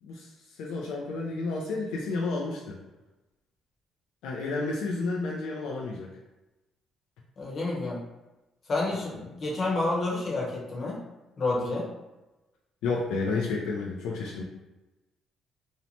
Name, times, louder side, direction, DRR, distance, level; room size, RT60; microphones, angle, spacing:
voice 1, 0.0-2.8 4.2-6.1 8.9-9.0 12.8-14.4, left 3 dB, 90° left, -2 dB, 0.3 m, -31 dB
voice 2, 7.4-8.0 8.7-11.0 11.4-11.9, left 2 dB, 45° left, -4 dB, 0.9 m, -29 dB
2.7 x 2.1 x 2.8 m, 1.1 s
cardioid pair, 105°, 0 cm